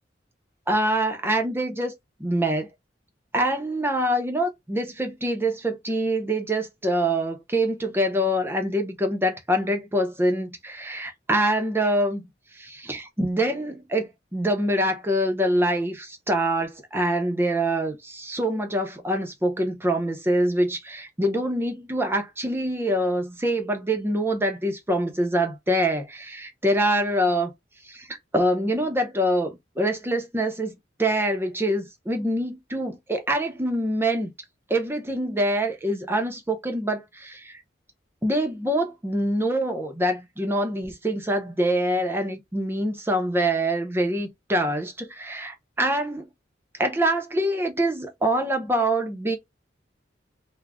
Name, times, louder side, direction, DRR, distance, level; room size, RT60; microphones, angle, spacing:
voice 1, 0.7-1.9 2.2-2.7 3.3-12.2 12.5-27.5 27.9-30.7 31.0-34.3 34.7-37.6 38.2-46.3 46.8-49.4, right 1 dB, 15° right, 0.6 m, -25 dB
2.4 x 2.1 x 3.3 m
head